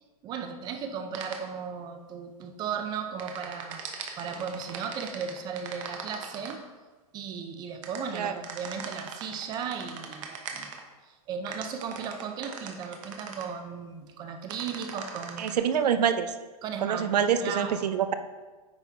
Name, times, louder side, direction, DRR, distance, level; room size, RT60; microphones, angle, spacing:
voice 1, 0.2-3.9 4.2-6.6 7.1-10.7 11.1-15.6 16.6-17.1 17.4-17.8, right 6 dB, 20° right, 6 dB, 0.6 m, -36 dB
sound 1, 1.1-1.4 3.2-6.5 7.8-10.8 11.5-13.4 14.5-15.5, right 7 dB, 55° right, 1.2 m, -39 dB
voice 2, 15.4-16.3 16.8-18.1, right 8 dB, 85° right, 10 dB, 0.7 m, -25 dB
9.2 x 5.4 x 3.6 m, 1.3 s
hypercardioid pair, 155°, 20 cm